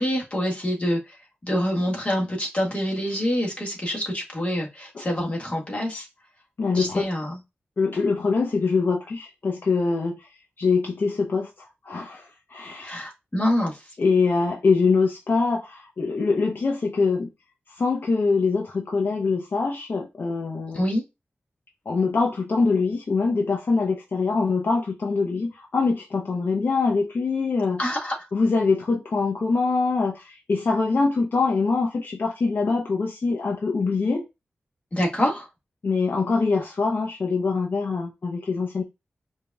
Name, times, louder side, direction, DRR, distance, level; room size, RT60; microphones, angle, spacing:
voice 1, 0.0-6.1 6.7-7.4 12.8-13.9 20.7-21.0 27.8-28.3 34.9-35.5, equal, 30° left, 1.7 m, -26 dB
voice 2, 6.6-7.0 7.8-10.3 10.6-13.0 14.0-17.3 17.8-20.8 21.9-27.8 28.3-34.2 35.8-38.8, left 4 dB, 60° left, 0.7 m, -24 dB
5.0 x 2.7 x 2.3 m
wide cardioid pair, 100°, 4 cm